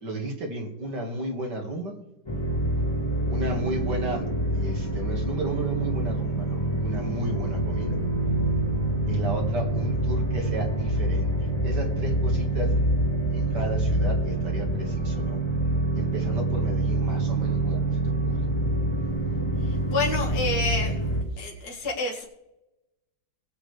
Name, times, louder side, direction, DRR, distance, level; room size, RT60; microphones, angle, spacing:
voice 1, 0.0-1.9 3.3-4.2 4.5-8.0 9.1-11.3 11.6-12.7 13.3-15.4 16.0-18.4, right 1 dB, 60° right, 1 dB, 2.6 m, -33 dB
sound 1, 2.3-21.2, right 1 dB, 15° left, 1.4 m, -26 dB
voice 2, 19.6-21.1 21.4-22.3, left 3 dB, 55° left, -2 dB, 2.6 m, -29 dB
20.0 x 8.6 x 3.5 m, 0.92 s
omnidirectional pair, 2.1 m